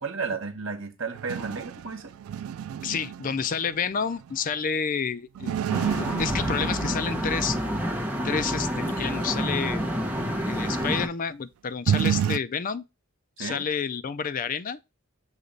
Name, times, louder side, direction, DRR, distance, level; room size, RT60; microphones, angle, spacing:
voice 1, 0.0-2.1 13.4-13.7, right 4 dB, 65° right, 1.1 m, -33 dB
sound 1, 1.1-4.4 5.3-7.6 11.9-12.4, right 9 dB, 90° right, 0.3 m, -30 dB
voice 2, 2.8-7.6 8.2-9.9 10.5-12.8 13.4-14.8, left 6 dB, 40° left, 0.4 m, -30 dB
sound 2, 5.7-11.1, equal, 10° right, 1.2 m, -28 dB
6.5 x 2.9 x 5.2 m
head